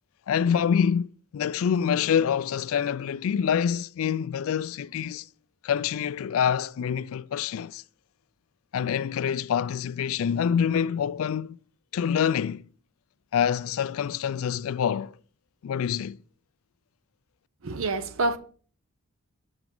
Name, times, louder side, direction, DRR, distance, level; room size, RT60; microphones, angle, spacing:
voice 1, 0.3-5.3 5.6-7.8 8.7-11.6 11.9-12.6 13.3-15.2 15.6-16.2, left 8 dB, 65° left, 0.3 m, -26 dB
voice 2, 17.6-18.4, right 2 dB, 65° right, 0.7 m, -27 dB
8.0 x 5.9 x 3.8 m
head